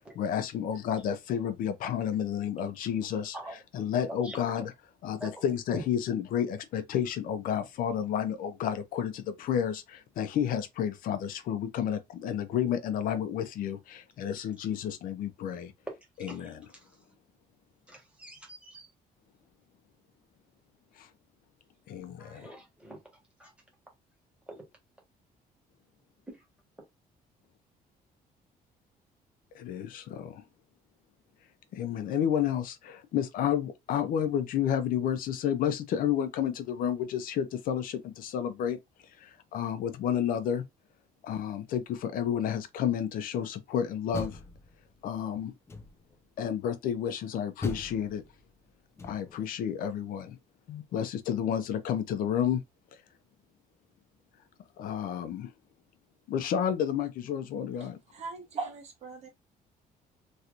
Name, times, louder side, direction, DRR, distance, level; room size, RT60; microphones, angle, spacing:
voice 1, 0.1-4.7 5.0-15.7 16.2-16.7 21.0-21.1 21.9-22.5 29.5-30.4 31.7-38.8 39.2-40.6 41.2-44.4 45.0-45.5 46.4-48.2 49.0-50.4 50.7-52.6 54.8-55.5 56.3-58.0, left 9 dB, 65° left, 0.6 m, -31 dB
voice 2, 4.2-4.7 5.2-5.3 5.7-5.8 16.3-16.6 17.9-18.9 22.2-23.0 23.4-23.5 24.5-24.6, equal, 5° right, 1.3 m, -43 dB
Door, 43.9-45.1 45.7-46.3 47.6-49.5, left 3 dB, 15° left, 0.4 m, -40 dB
voice 3, 57.8-59.3, right 4 dB, 45° right, 1.0 m, -39 dB
3.2 x 2.9 x 2.5 m
cardioid pair, 170°, 16 cm